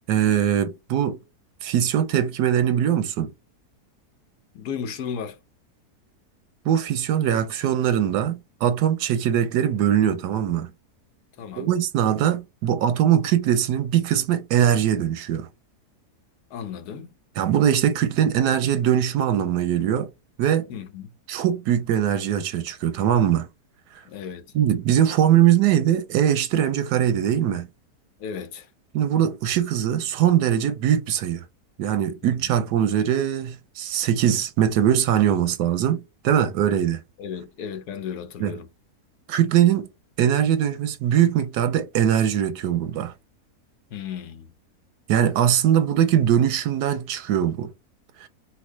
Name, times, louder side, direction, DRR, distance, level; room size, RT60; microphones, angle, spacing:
voice 1, 0.1-1.2 1.6-3.3 6.6-10.7 11.6-15.5 17.4-20.1 20.4-20.7 21.3-23.5 23.9-24.0 24.5-27.7 28.9-31.4 31.8-37.0 38.4-38.5 39.3-39.9 40.2-43.1 45.1-47.7 48.2-48.3, right 10 dB, 85° right, 1.2 m, -21 dB
voice 2, 4.5-5.4 11.4-11.7 16.5-17.1 20.7-21.1 24.0-24.5 28.2-28.7 32.2-32.5 37.2-38.7 43.9-44.5, left 7 dB, 75° left, 1.3 m, -35 dB
4.6 x 2.2 x 4.4 m
omnidirectional pair, 1.7 m